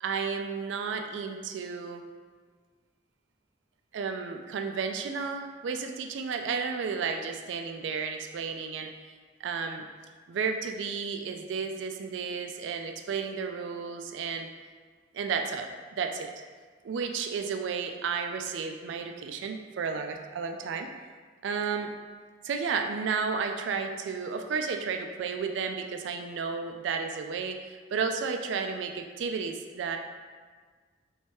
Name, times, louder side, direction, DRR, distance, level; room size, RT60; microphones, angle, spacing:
voice 1, 0.0-2.0 3.9-8.9 9.4-9.8 10.3-14.5 15.1-16.3 16.8-20.9 21.4-21.9 22.4-30.0, right 5 dB, 80° right, 5 dB, 0.3 m, -32 dB
3.2 x 3.1 x 4.4 m, 1.5 s
head